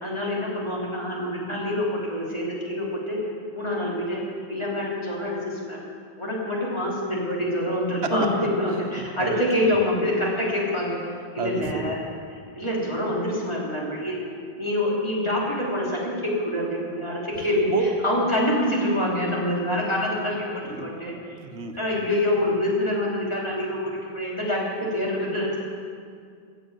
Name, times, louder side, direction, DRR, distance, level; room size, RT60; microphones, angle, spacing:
voice 1, 0.0-3.2 3.5-4.2 4.5-5.8 6.2-11.0 11.3-12.0 12.3-14.3 14.6-20.5 20.8-21.4 21.7-25.6, left 1 dB, 25° left, -5 dB, 3.1 m, -26 dB
voice 2, 9.0-9.4 11.4-11.9 17.7-17.9 20.7-20.9 21.3-21.7, right 5 dB, 90° right, 5 dB, 1.3 m, -30 dB
15.0 x 6.9 x 8.9 m, 2.2 s
omnidirectional pair, 1.1 m